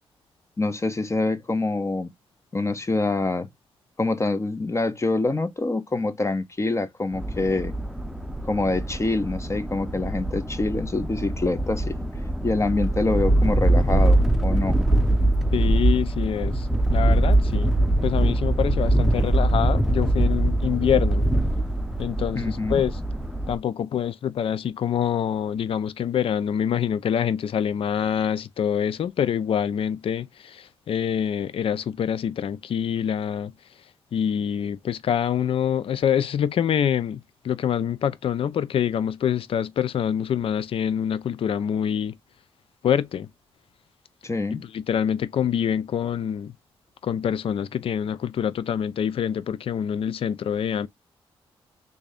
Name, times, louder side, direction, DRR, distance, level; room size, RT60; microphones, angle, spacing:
voice 1, 0.6-2.1 2.5-3.5 4.0-7.7 8.4-12.0 12.4-14.8 22.3-22.8 44.2-44.6, left 2 dB, 30° left, 0.8 m, -25 dB
sound 1, 7.1-23.6, right 1 dB, ahead, 0.6 m, -23 dB
voice 2, 15.5-16.7 16.9-17.7 18.0-21.3 22.0-23.0 23.5-33.5 34.1-37.2 37.4-42.2 42.8-43.3 44.5-46.5 47.0-50.9, left 9 dB, 65° left, 0.4 m, -25 dB
3.4 x 2.7 x 3.3 m
cardioid pair, 70°, 10 cm